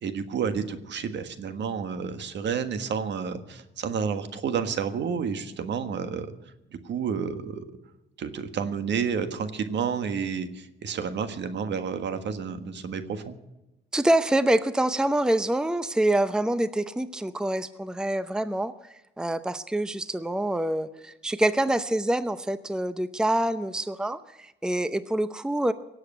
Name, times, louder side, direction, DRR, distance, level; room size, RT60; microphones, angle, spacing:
voice 1, 0.0-6.3 6.8-7.6 8.2-13.4, right 6 dB, 65° right, 9 dB, 1.6 m, -30 dB
voice 2, 13.9-18.7 19.2-25.7, right 1 dB, 5° right, 12 dB, 0.7 m, -26 dB
18.0 x 8.0 x 9.4 m, 0.98 s
cardioid pair, 90°, 20 cm